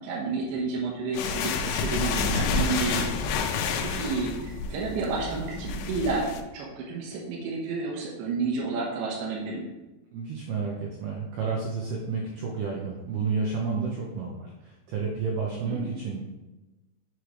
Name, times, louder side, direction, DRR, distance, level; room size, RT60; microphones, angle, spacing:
voice 1, 0.0-3.0 3.4-6.2 6.5-9.7 15.7-16.0, right 4 dB, 70° right, -5 dB, 3.3 m, -31 dB
sound 1, 1.1-6.4, left 5 dB, 85° left, 3.3 m, -29 dB
voice 2, 10.1-16.2, right 4 dB, 90° right, -2 dB, 2.3 m, -31 dB
7.8 x 6.6 x 3.3 m, 1.1 s
omnidirectional pair, 5.9 m